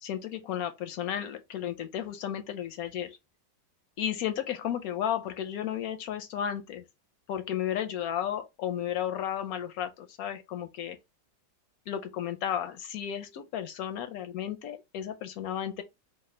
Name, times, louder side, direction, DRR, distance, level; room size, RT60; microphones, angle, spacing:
voice 1, 0.0-3.2 4.0-6.8 7.3-11.0 11.9-15.8, left 10 dB, 70° left, 0.9 m, -33 dB
3.2 x 2.2 x 4.1 m
omnidirectional pair, 1.9 m